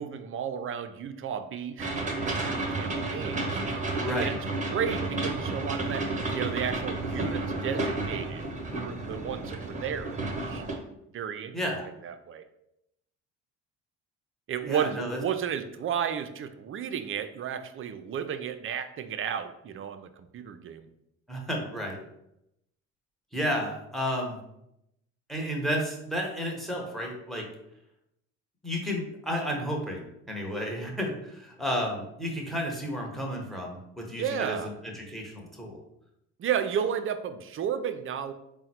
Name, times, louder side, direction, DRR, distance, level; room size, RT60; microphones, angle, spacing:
voice 1, 0.0-2.5 2.8-4.4 4.7-10.6 11.1-11.6 12.0-12.4 14.5-20.9 34.2-34.7 36.4-38.3, right 8 dB, 40° right, 9 dB, 0.4 m, -33 dB
sound 1, 1.8-10.8, right 2 dB, 20° right, 1.0 m, -31 dB
voice 2, 4.0-4.4 11.5-11.9 14.6-15.2 21.3-22.0 23.3-24.4 25.3-27.5 28.6-35.8, equal, ahead, 0 dB, 1.0 m, -32 dB
3.8 x 2.1 x 4.3 m, 0.82 s
supercardioid pair, 70°, 34 cm